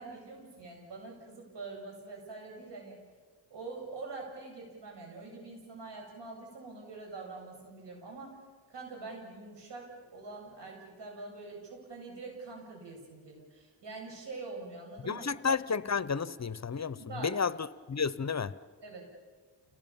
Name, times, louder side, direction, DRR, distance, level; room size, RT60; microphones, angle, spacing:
voice 1, 0.0-3.0 3.5-8.4 8.7-15.3 17.0-17.3 18.8-19.1, right 3 dB, 75° right, 1 dB, 7.6 m, -45 dB
voice 2, 15.1-17.0 17.2-18.5, left 5 dB, 40° left, 16 dB, 0.8 m, -31 dB
30.0 x 18.5 x 7.2 m, 1.5 s
cardioid pair, 65°, 43 cm